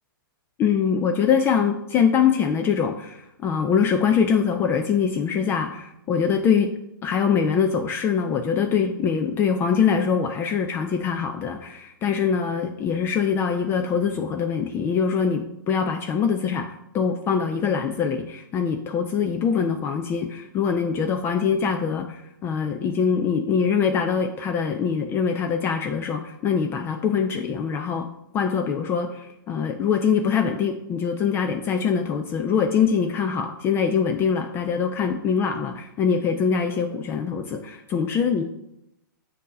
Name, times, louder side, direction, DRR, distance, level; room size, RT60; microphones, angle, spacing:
voice 1, 0.6-6.7 7.0-28.1 28.3-38.4, left 6 dB, 20° left, 5 dB, 0.4 m, -23 dB
7.3 x 2.7 x 5.2 m, 0.84 s
figure-of-eight pair, 115°, 12 cm